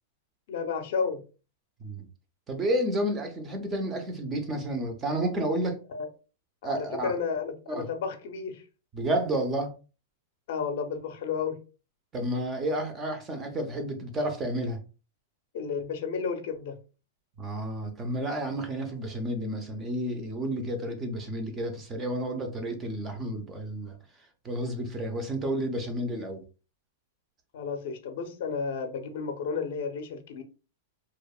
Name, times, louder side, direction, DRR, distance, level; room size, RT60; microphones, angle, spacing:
voice 1, 0.5-1.2 5.9-6.1 6.6-8.6 10.5-11.6 15.5-16.8 27.5-30.4, left 5 dB, 50° left, 0.4 m, -32 dB
voice 2, 2.5-5.8 6.6-7.1 7.7-7.8 8.9-9.7 12.1-14.8 17.4-24.0 24.4-26.4, right 1 dB, 15° right, 0.4 m, -31 dB
2.7 x 2.0 x 2.3 m
supercardioid pair, 175°, 0 cm